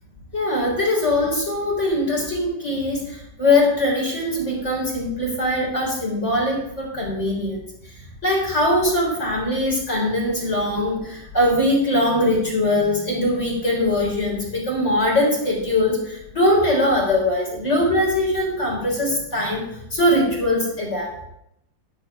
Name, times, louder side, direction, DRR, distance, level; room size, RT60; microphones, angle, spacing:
voice 1, 0.3-7.6 8.2-19.6 19.9-21.1, left 1 dB, 20° left, -3 dB, 4.0 m, -21 dB
12.0 x 5.8 x 6.1 m, 0.78 s
omnidirectional pair, 3.8 m